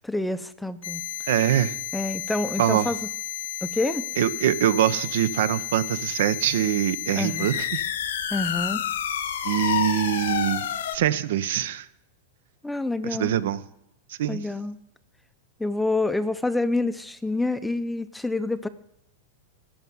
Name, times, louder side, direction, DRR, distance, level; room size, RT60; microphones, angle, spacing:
voice 1, 0.0-1.0 1.9-3.1 3.6-4.0 7.2-7.5 8.3-8.8 12.6-13.3 14.3-14.8 15.6-18.7, left 2 dB, 5° left, 12 dB, 0.5 m, -27 dB
sound 1, 0.8-11.0, left 10 dB, 85° left, 1.3 m, -31 dB
voice 2, 1.3-1.8 2.6-2.9 4.2-7.9 9.4-11.9 13.1-13.6 14.1-14.4, right 11 dB, 70° right, 15 dB, 0.7 m, -24 dB
14.0 x 5.7 x 9.4 m, 0.80 s
supercardioid pair, 150°, 0 cm